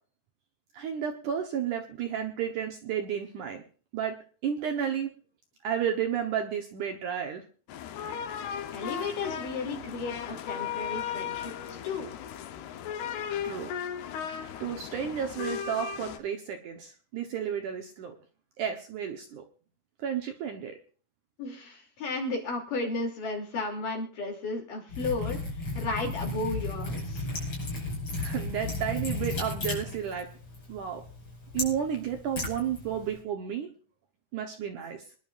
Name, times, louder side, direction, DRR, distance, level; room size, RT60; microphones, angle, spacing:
voice 1, 0.7-3.6 3.9-4.2 4.4-5.1 5.6-7.4 13.4-13.7 14.6-18.2 18.6-19.4 20.0-20.7 28.2-30.3 30.7-31.0 31.5-33.7 34.3-35.0, right 8 dB, 65° right, 4 dB, 2.2 m, -32 dB
sound 1, 7.7-16.2, left 8 dB, 85° left, 3.0 m, -36 dB
voice 2, 8.7-12.1 21.4-27.3, left 3 dB, 60° left, 1 dB, 4.4 m, -34 dB
Liquid, 24.9-33.2, left 2 dB, 35° left, 6.7 m, -35 dB
25.0 x 11.0 x 2.6 m, 0.40 s
omnidirectional pair, 4.5 m